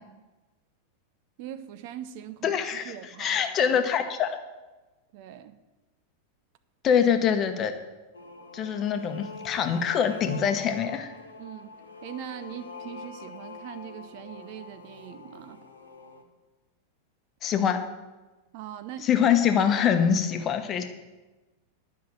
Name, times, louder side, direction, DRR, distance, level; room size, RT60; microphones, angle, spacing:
voice 1, 1.4-3.8 5.1-5.6 11.4-15.6 18.5-19.1, right 11 dB, 45° right, 12 dB, 0.6 m, -41 dB
voice 2, 2.4-4.4 6.8-7.7 8.5-11.1 17.4-17.8 19.0-20.8, left 8 dB, 30° left, 7 dB, 1.0 m, -24 dB
sound 1, 8.1-16.2, left 4 dB, 70° left, 1.3 m, -44 dB
10.5 x 5.7 x 8.6 m, 1.1 s
figure-of-eight pair, 90°, 0 cm